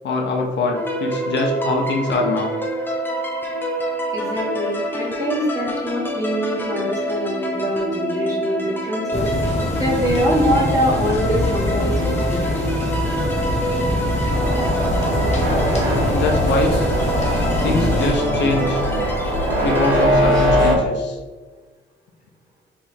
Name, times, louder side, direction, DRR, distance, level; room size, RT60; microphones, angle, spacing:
voice 1, 0.0-2.5 16.1-16.9 17.6-18.8 19.6-21.2, left 2 dB, 65° left, 1 dB, 0.7 m, -23 dB
sound 1, 0.7-20.1, equal, 10° left, 0.7 m, -27 dB
voice 2, 4.1-9.3 9.8-12.5, equal, 15° right, -4 dB, 1.5 m, -24 dB
sound 2, 9.1-18.1, left 1 dB, 35° left, 1.0 m, -24 dB
sound 3, 14.3-20.8, equal, 75° right, 1.2 m, -21 dB
3.4 x 2.8 x 4.3 m, 1.3 s
cardioid pair, 90°, 20 cm